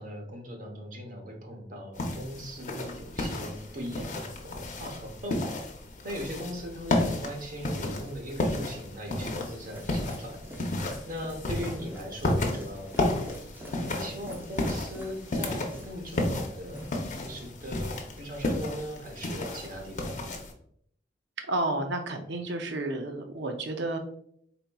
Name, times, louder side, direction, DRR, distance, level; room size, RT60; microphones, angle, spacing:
voice 1, 0.0-5.6 6.0-13.1 13.6-20.2, equal, 50° right, 2 dB, 0.9 m, -39 dB
sound 1, 2.0-20.5, left 1 dB, 45° left, 0.7 m, -33 dB
sound 2, 8.9-18.7 19.0-19.4, equal, 10° right, 0.7 m, -47 dB
voice 2, 21.5-24.0, right 2 dB, 70° right, 5 dB, 0.6 m, -31 dB
4.0 x 4.0 x 2.3 m, 0.67 s
head